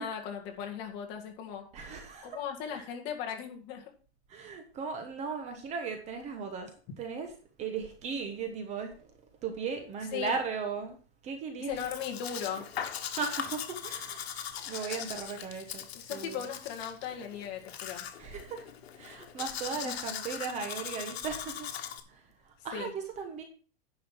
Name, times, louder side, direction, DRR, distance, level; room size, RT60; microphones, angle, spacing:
voice 1, 0.0-1.6 2.2-3.8 10.1-10.3 11.7-12.7 15.9-18.1 19.8-19.9 22.7-22.9, left 8 dB, 35° left, 2 dB, 1.9 m, -37 dB
voice 2, 1.7-2.4 2.6-2.8 4.3-7.3 7.6-9.1 9.4-11.0 11.2-11.9 13.1-14.3 14.7-16.5 18.2-18.6 19.0-21.7 22.1-23.4, right 5 dB, 20° right, 6 dB, 1.2 m, -37 dB
Domestic sounds home sounds, 11.8-22.0, left 9 dB, 80° left, 1.6 m, -40 dB
10.0 x 5.6 x 5.7 m, 0.40 s
supercardioid pair, 160°, 32 cm